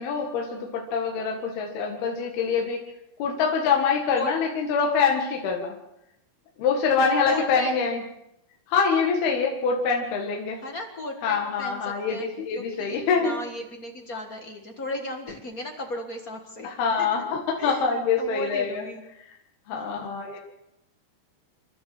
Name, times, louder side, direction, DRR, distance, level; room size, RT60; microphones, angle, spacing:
voice 1, 0.0-2.8 3.2-5.8 6.6-8.0 8.7-10.6 11.2-13.3 16.6-18.8 19.7-20.4, left 5 dB, 75° left, 1 dB, 3.8 m, -25 dB
voice 2, 7.2-7.7 10.6-17.3 17.6-19.0 19.7-20.1, left 2 dB, 55° left, 3 dB, 0.9 m, -36 dB
28.5 x 12.5 x 7.7 m, 0.86 s
omnidirectional pair, 4.6 m